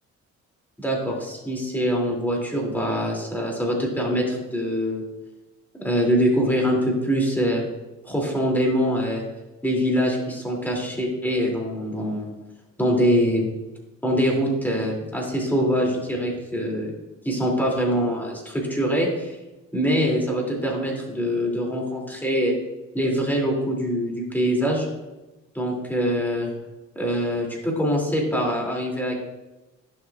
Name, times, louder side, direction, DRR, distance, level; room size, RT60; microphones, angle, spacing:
voice 1, 0.8-5.0 5.7-7.7 8.0-9.2 9.6-12.3 12.8-13.5 14.0-16.9 17.2-19.3 19.7-22.6 22.9-24.9 25.5-26.5 27.0-29.1, equal, 5° left, -2 dB, 2.5 m, -24 dB
11.0 x 6.5 x 2.4 m, 1.1 s
cardioid pair, 90°, 30 cm